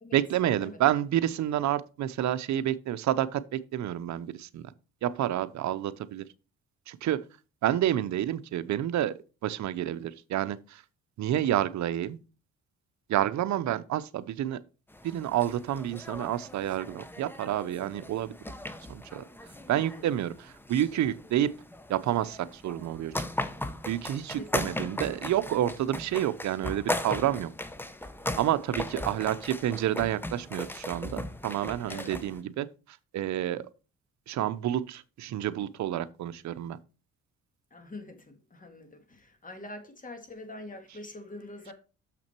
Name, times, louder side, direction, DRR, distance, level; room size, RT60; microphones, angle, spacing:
voice 1, 0.1-4.7 5.0-6.2 6.9-7.2 7.6-10.8 11.2-12.2 13.1-14.6 15.0-18.3 18.9-19.2 19.7-21.6 21.9-23.2 23.9-27.5 28.4-33.7 34.3-36.8, right 12 dB, 65° right, 0.7 m, -29 dB
sound 1, 14.9-32.4, left 1 dB, 5° left, 0.7 m, -38 dB
voice 2, 19.7-20.2 24.3-25.1 28.7-29.1 31.9-32.2 37.7-41.7, left 2 dB, 25° left, 1.8 m, -45 dB
6.8 x 5.9 x 4.5 m
cardioid pair, 90°, 30 cm